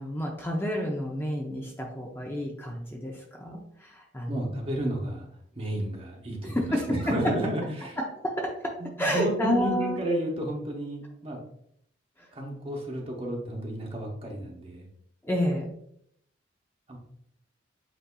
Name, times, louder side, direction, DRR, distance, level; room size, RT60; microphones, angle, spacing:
voice 1, 0.0-4.4 6.4-7.1 8.0-10.0 12.2-12.3 15.2-15.7, equal, 10° left, -1 dB, 0.5 m, -30 dB
voice 2, 4.3-5.3 5.5-8.0 8.8-11.4 12.3-14.9 16.9-17.0, right 1 dB, 30° right, 0 dB, 0.9 m, -32 dB
8.0 x 2.7 x 2.3 m, 0.70 s
head